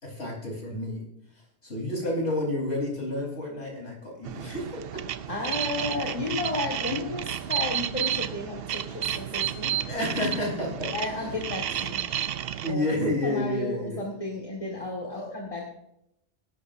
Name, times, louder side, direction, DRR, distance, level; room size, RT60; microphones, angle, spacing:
voice 1, 0.0-1.0 1.6-4.8 9.8-10.9 11.2-11.3 12.6-14.0 15.1-15.4, left 1 dB, 75° left, -1 dB, 4.6 m, -30 dB
sound 1, 4.2-12.7, right 10 dB, 65° right, 0.8 m, -31 dB
voice 2, 5.3-9.7 10.9-12.0 12.7-12.9 13.2-15.7, left 2 dB, 30° left, -1 dB, 1.9 m, -33 dB
17.5 x 11.5 x 2.6 m, 0.79 s
omnidirectional pair, 1.1 m